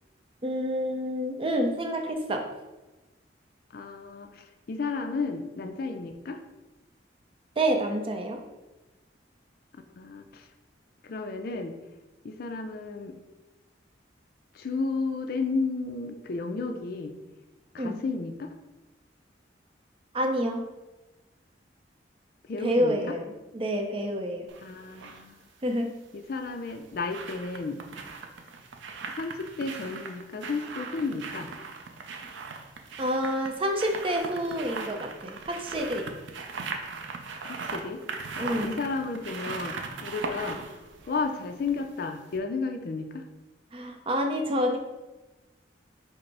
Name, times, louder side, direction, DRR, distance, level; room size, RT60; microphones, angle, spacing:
voice 1, 0.4-2.4 7.6-8.4 17.8-18.0 20.1-20.6 22.6-24.5 25.6-25.9 33.0-36.1 38.4-38.8 43.7-44.8, equal, 30° right, 3 dB, 0.5 m, -28 dB
voice 2, 3.7-6.4 10.0-10.4 11.0-11.8 12.2-13.2 14.6-17.1 17.7-18.5 22.5-23.0 24.6-25.3 26.3-27.8 29.1-31.5 37.4-38.0 38.4-40.6 41.1-43.2, left 4 dB, 55° left, 6 dB, 0.4 m, -32 dB
sound 1, 24.5-25.2 26.5-42.0 42.3-42.4, right 4 dB, 90° right, 0.5 m, -39 dB
5.0 x 2.0 x 4.6 m, 1.1 s
head